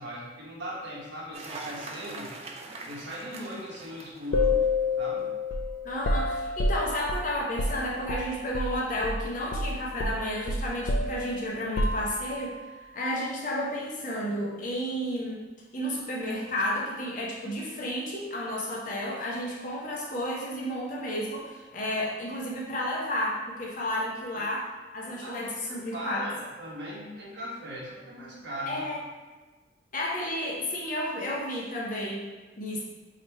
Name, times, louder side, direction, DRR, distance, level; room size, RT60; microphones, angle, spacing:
voice 1, 0.0-2.3 2.8-4.6 5.0-5.3 24.3-24.4 25.2-28.8, equal, 70° right, -5 dB, 1.1 m, -39 dB
Cheering / Applause, 1.3-5.0, right 3 dB, 35° right, 0.3 m, -42 dB
sound 1, 4.3-8.8 9.0-9.2 9.5-12.5, left 2 dB, 60° left, 0.4 m, -29 dB
voice 2, 5.8-15.4 15.7-26.3 28.7-29.0 29.9-32.3 32.6-32.8, left 1 dB, 45° left, -3 dB, 0.7 m, -32 dB
2.9 x 2.9 x 4.4 m, 1.3 s
head